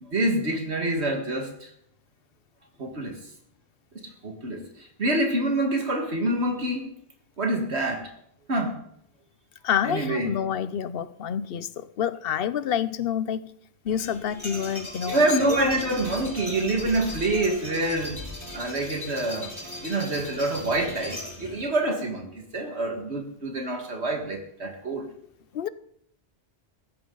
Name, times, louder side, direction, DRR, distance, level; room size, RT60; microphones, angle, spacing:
voice 1, 0.0-1.7 2.8-3.2 4.2-6.9 7.4-8.1 8.5-8.8 9.8-10.4 15.0-18.2 18.5-19.6 19.8-25.1, right 2 dB, 70° right, 2.1 m, -26 dB
voice 2, 9.6-13.5 13.8-15.2 15.5-15.6 25.5-25.7, left 9 dB, 60° left, 0.8 m, -28 dB
sound 1, 13.9-21.7, left 1 dB, 25° left, 3.4 m, -38 dB
17.5 x 15.0 x 3.9 m
omnidirectional pair, 1.1 m